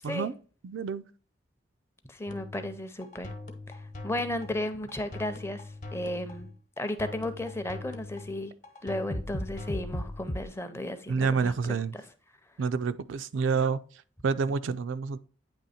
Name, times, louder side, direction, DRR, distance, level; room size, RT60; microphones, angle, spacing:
voice 1, 0.6-1.0 11.1-12.0 12.6-15.2, right 5 dB, 80° right, 0.4 m, -29 dB
voice 2, 2.1-3.3 3.7-5.6 5.9-6.5 6.8-8.5 8.8-11.5, left 1 dB, 15° left, 0.5 m, -34 dB
sound 1, 2.3-10.5, left 1 dB, 40° left, 1.0 m, -39 dB
8.9 x 3.0 x 4.2 m
head